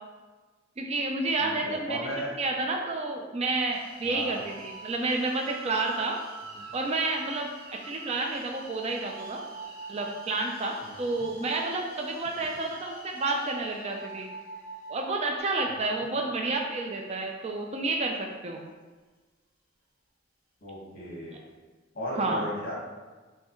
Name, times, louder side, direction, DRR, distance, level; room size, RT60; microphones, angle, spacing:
voice 1, 0.8-2.1 2.4-6.2 6.7-7.5 7.8-9.4 9.9-14.3 14.9-18.6 22.2-22.5, right 2 dB, 35° right, 1 dB, 0.4 m, -30 dB
voice 2, 1.4-2.3 4.1-4.4 6.6-6.7 10.8-11.3 12.4-12.5 20.6-21.4 21.9-22.7, equal, 50° left, -5 dB, 1.5 m, -36 dB
sound 1, 3.7-17.3, equal, 50° right, 1.3 m, -52 dB
sound 2, 3.9-10.3 10.9-15.4, right 4 dB, 80° right, 0.9 m, -45 dB
5.4 x 3.2 x 3.0 m, 1.3 s
head